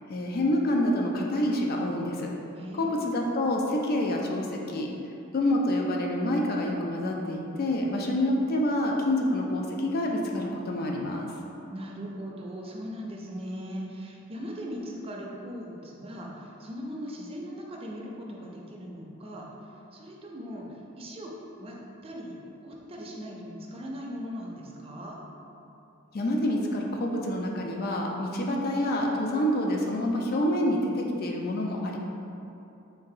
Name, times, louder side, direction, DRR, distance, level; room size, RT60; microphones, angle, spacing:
voice 1, 0.1-2.3 2.7-4.9 5.3-11.3 26.1-32.0, left 1 dB, 50° left, 0 dB, 0.4 m, -27 dB
voice 2, 2.6-2.9 11.7-19.5 19.9-20.7 21.0-25.2, equal, 30° right, -2 dB, 0.5 m, -39 dB
3.7 x 2.7 x 3.7 m, 2.9 s
head